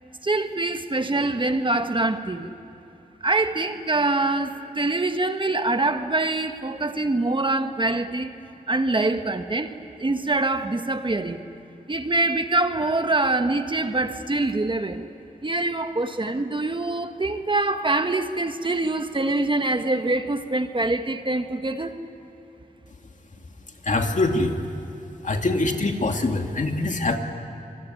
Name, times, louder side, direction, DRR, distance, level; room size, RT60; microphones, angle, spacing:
voice 1, 0.2-2.5 3.2-8.3 8.7-11.4 11.9-15.0 15.4-21.9, right 2 dB, 35° right, 7 dB, 1.4 m, -24 dB
voice 2, 23.8-24.6 25.2-27.2, left 2 dB, 55° left, 4 dB, 2.5 m, -23 dB
26.5 x 22.5 x 9.8 m, 3.0 s
wide cardioid pair, 100°, 15 cm